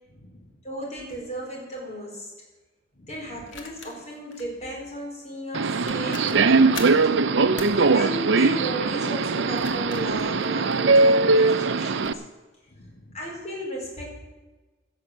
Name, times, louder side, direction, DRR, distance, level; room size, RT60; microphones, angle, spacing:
voice 1, 0.1-0.6 2.9-3.4 6.2-6.6 9.7-9.8 12.7-13.2, left 1 dB, 55° left, -2 dB, 1.8 m, -51 dB
voice 2, 0.6-2.3 3.1-7.0 7.7-12.2 13.1-14.1, right 1 dB, 35° left, -2 dB, 4.6 m, -35 dB
sound 1, 1.1-1.3 3.5-4.5 5.5-5.6 5.9-7.0 7.6-7.8 9.3-11.2 11.8-12.2, left 5 dB, 80° left, 1.6 m, -41 dB
Subway metro underground, 5.5-12.1, right 3 dB, 70° right, 0.6 m, -20 dB
16.5 x 6.4 x 7.4 m, 1.2 s
head